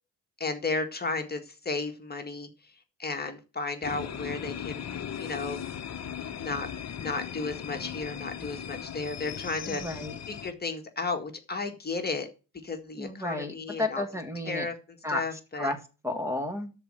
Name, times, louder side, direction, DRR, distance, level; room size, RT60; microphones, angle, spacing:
voice 1, 0.4-2.7 3.0-5.6 6.3-6.7 7.0-10.0 10.3-12.3 12.6-14.0 14.5-14.7 15.1-15.7, left 3 dB, 25° left, 1.9 m, -34 dB
sound 1, 3.8-10.5, left 8 dB, 45° left, 1.2 m, -38 dB
voice 2, 9.7-10.2 13.0-14.7 15.0-15.8 16.0-16.7, left 1 dB, 5° right, 2.1 m, -32 dB
12.5 x 4.4 x 7.8 m
cardioid pair, 90°, 38 cm